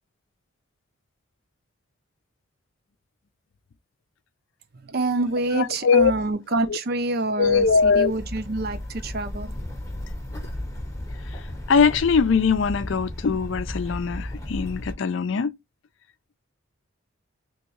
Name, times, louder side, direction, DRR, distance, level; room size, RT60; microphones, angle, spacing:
voice 1, 4.7-9.5, right 2 dB, 50° right, 0.5 m, -26 dB
voice 2, 5.5-6.1 6.7-6.8 7.4-8.1 11.7-15.5, left 5 dB, 65° left, 0.4 m, -21 dB
sound 1, 7.4-14.9, left 1 dB, 15° left, 0.8 m, -34 dB
3.5 x 3.0 x 2.9 m
head